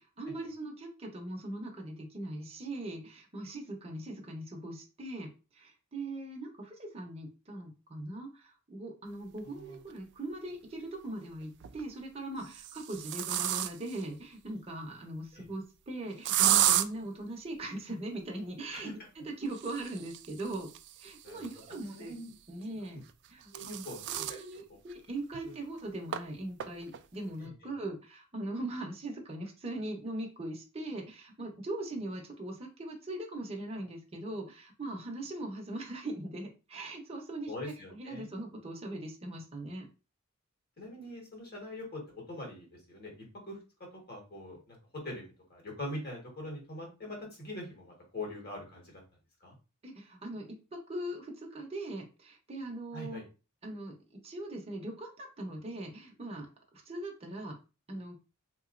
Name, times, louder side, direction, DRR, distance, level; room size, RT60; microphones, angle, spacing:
voice 1, 0.0-18.9 19.2-20.7 21.0-22.1 22.5-23.0 23.3-39.9 49.8-53.2 53.6-56.5 56.9-57.5 57.9-58.2, right 1 dB, 30° right, 0 dB, 0.8 m, -40 dB
sound 1, 9.9-10.0 11.4-11.8 12.4-14.0 16.2-16.9 19.4-22.1 23.1-24.4 24.9-25.0 25.3-25.4 26.1-26.2 26.6-27.0, right 12 dB, 55° right, 0.3 m, -32 dB
voice 2, 21.9-22.3 23.5-24.4 24.7-24.8 25.4-25.5 27.4-27.5 37.5-38.3 40.8-43.1 43.4-43.6 43.9-45.2 45.5-49.0 49.4-49.5 52.9-53.2, left 1 dB, 50° left, -1 dB, 1.6 m, -43 dB
3.7 x 3.0 x 2.5 m, 0.31 s
head